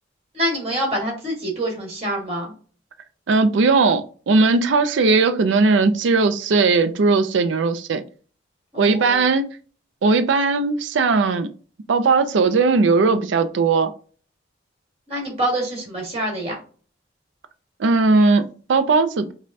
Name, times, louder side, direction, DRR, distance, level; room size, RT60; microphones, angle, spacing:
voice 1, 0.3-2.5 8.7-9.3 15.1-16.6, right 1 dB, 30° right, 1.7 m, -26 dB
voice 2, 3.3-8.0 8.8-9.5 10.0-11.5 11.9-13.9 17.8-19.3, right 4 dB, 85° right, 0.4 m, -18 dB
5.0 x 2.2 x 2.7 m
head